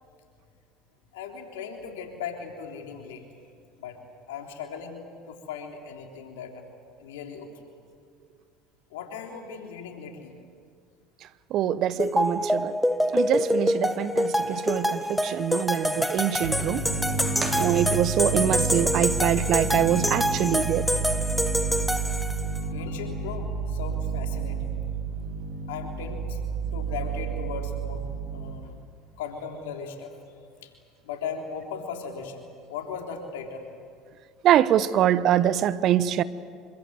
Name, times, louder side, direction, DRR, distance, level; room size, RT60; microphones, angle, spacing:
voice 1, 1.1-3.2 3.8-4.0 4.3-6.6 7.0-7.5 8.9-10.3 17.2-17.6 22.5-24.8 25.7-26.4 26.7-28.0 28.3-28.8 29.2-30.1 30.6-30.7 31.0-33.7, left 6 dB, 80° left, 3 dB, 3.6 m, -38 dB
voice 2, 11.5-12.7 13.1-16.8 17.6-20.9 34.4-36.2, right 11 dB, 55° right, 16 dB, 1.0 m, -24 dB
sound 1, 12.0-22.6, equal, ahead, 1.4 m, -26 dB
sound 2, 16.4-28.5, right 4 dB, 80° right, 4.7 m, -30 dB
sound 3, 17.3-18.5, right 4 dB, 30° right, 4.0 m, -37 dB
26.5 x 24.0 x 7.9 m, 2.2 s
hypercardioid pair, 80°, 0 cm